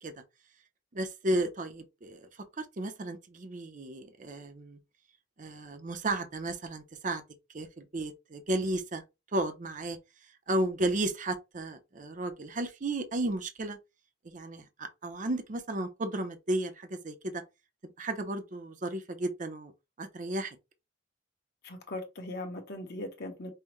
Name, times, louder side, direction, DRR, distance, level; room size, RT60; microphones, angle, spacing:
voice 1, 0.9-2.2 2.6-4.8 5.4-7.2 7.5-9.0 9.3-10.0 10.5-13.8 14.2-17.4 17.8-19.7 20.0-20.6, right 1 dB, 40° right, 0.6 m, -33 dB
voice 2, 21.6-23.5, left 1 dB, 55° left, 1.2 m, -39 dB
5.5 x 2.1 x 3.0 m
head